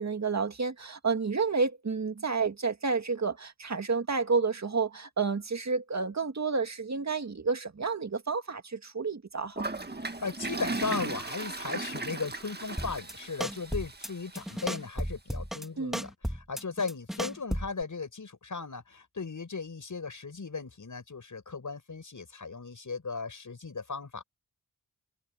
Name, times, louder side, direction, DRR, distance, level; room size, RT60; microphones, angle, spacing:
voice 1, 0.0-9.7 15.8-16.0, right 4 dB, 45° right, 2.1 m, -30 dB
Toilet flush, 9.6-14.6, right 3 dB, 25° right, 1.8 m, -37 dB
voice 2, 10.0-24.2, left 4 dB, 55° left, 6.6 m, -37 dB
sound 1, 12.8-13.1 13.4-14.1 14.4-15.7 15.9-17.8, equal, ahead, 2.2 m, -34 dB
wide cardioid pair, 100°, 37 cm